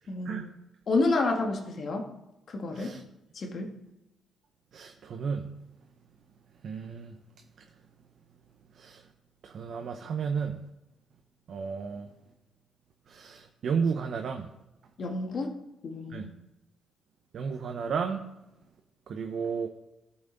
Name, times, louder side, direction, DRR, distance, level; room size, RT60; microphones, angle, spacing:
voice 1, 0.1-0.5 0.9-2.1 2.5-3.0 3.3-3.7 15.0-15.6 15.8-16.3, left 3 dB, 50° left, 3 dB, 1.6 m, -29 dB
voice 2, 4.7-5.5 6.6-7.1 8.8-9.0 9.4-10.6 11.5-12.1 13.1-14.5 16.1-16.3 17.3-18.3 19.1-19.7, right 6 dB, 60° right, 4 dB, 0.7 m, -32 dB
13.5 x 6.0 x 3.9 m, 0.95 s
cardioid pair, 90°, 0 cm